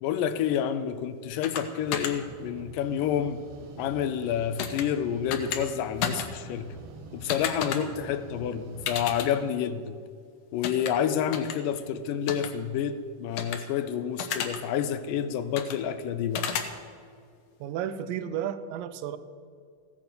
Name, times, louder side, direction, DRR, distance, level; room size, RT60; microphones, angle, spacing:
voice 1, 0.0-3.4 3.8-6.7 7.1-10.0 10.5-16.5, left 9 dB, 85° left, 11 dB, 2.3 m, -29 dB
sound 1, 1.4-1.6 1.9-2.1 4.6-4.8 5.3-5.6 6.0-6.3 7.3-7.8 8.9-9.3 10.6-10.9 11.3-11.5 12.3-12.5 13.4-13.6 14.2-14.6 15.6-15.8 16.3-16.7, left 7 dB, 65° left, 1.7 m, -31 dB
sound 2, 1.8-9.2, right 4 dB, 70° right, 1.7 m, -46 dB
voice 2, 17.6-19.2, right 9 dB, 85° right, 13 dB, 2.4 m, -32 dB
15.0 x 9.1 x 6.7 m, 2.2 s
omnidirectional pair, 3.9 m